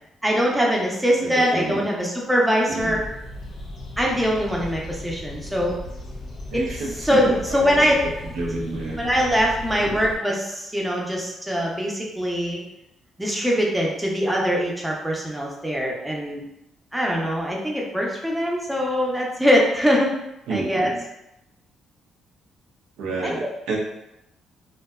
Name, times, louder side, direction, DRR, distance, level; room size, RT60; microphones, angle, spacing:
voice 1, 0.2-3.0 4.0-5.8 6.5-6.6 7.0-7.9 9.0-12.6 13.2-16.4 16.9-20.1 20.5-20.9 23.2-23.4, equal, 10° right, -2 dB, 0.5 m, -22 dB
voice 2, 1.1-1.9 2.7-3.0 6.5-8.0 8.3-9.0 9.8-10.0 20.5-21.0 23.0-23.8, right 3 dB, 90° right, -2 dB, 0.5 m, -30 dB
sound 1, 2.8-10.2, left 1 dB, 55° left, 0.6 m, -37 dB
2.5 x 2.2 x 2.3 m, 0.86 s
cardioid pair, 90°, 0 cm